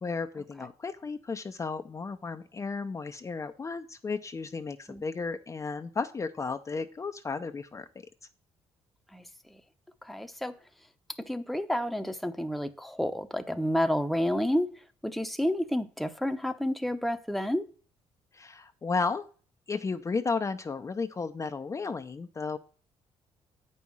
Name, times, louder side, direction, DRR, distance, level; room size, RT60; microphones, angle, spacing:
voice 1, 0.0-7.9 18.3-19.2 19.7-22.6, left 4 dB, 30° left, 0.7 m, -33 dB
voice 2, 10.0-10.5 11.3-14.7 15.0-17.7, equal, ahead, 0.9 m, -30 dB
8.5 x 5.6 x 6.1 m
cardioid pair, 95°, 11 cm